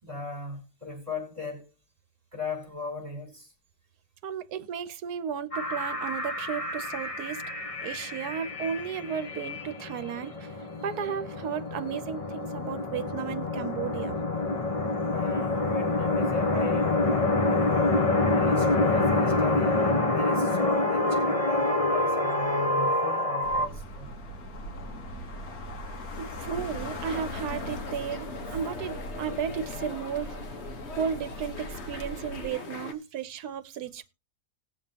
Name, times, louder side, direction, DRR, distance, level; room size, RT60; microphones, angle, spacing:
voice 1, 0.0-1.7 2.3-3.5 15.1-18.0 18.3-19.9 20.1-24.1, left 3 dB, 20° right, 5.5 m, -38 dB
voice 2, 4.2-7.4 7.8-10.5 10.8-14.2 26.2-30.4 30.9-34.1, right 7 dB, 75° right, 1.3 m, -34 dB
sound 1, 5.5-23.7, left 2 dB, 25° left, 1.0 m, -27 dB
sound 2, 23.4-32.5, left 1 dB, 65° left, 2.1 m, -40 dB
sound 3, 27.0-32.9, left 3 dB, 45° left, 1.4 m, -40 dB
19.5 x 7.3 x 2.9 m
omnidirectional pair, 1.7 m